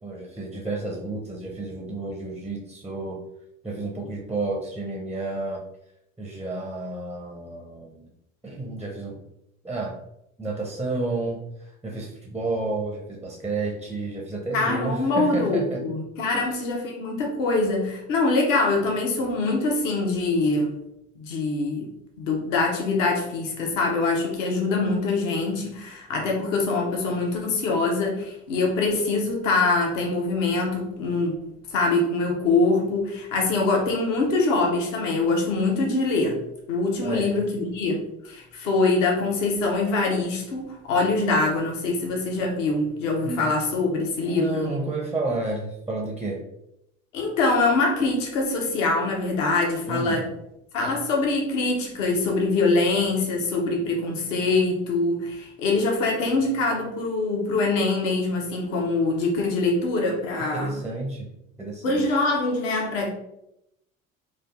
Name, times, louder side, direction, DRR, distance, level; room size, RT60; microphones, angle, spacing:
voice 1, 0.0-3.2 3.6-5.6 6.2-8.1 8.4-9.2 9.6-9.9 10.4-15.8 16.3-16.5 37.0-37.5 43.2-43.5 44.2-46.5 49.9-50.3 60.5-61.3 61.6-62.2, right 2 dB, 5° right, 0 dB, 0.4 m, -31 dB
voice 2, 14.5-20.7 21.2-21.9 22.2-31.4 31.7-36.4 36.7-44.7 47.1-50.3 50.7-60.7 61.8-63.1, left 3 dB, 65° left, 1 dB, 0.9 m, -24 dB
4.4 x 2.4 x 2.5 m, 0.83 s
figure-of-eight pair, 65°, 41 cm